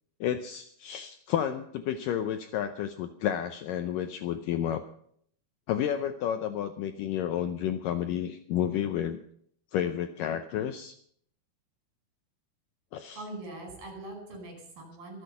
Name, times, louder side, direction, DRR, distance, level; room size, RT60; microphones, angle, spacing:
voice 1, 0.2-4.8 5.7-9.2 9.7-11.0 12.9-13.2, left 10 dB, 90° left, 8 dB, 1.9 m, -31 dB
voice 2, 13.2-15.2, right 2 dB, 60° right, 3 dB, 6.6 m, -42 dB
25.0 x 8.5 x 5.6 m, 0.64 s
omnidirectional pair, 4.9 m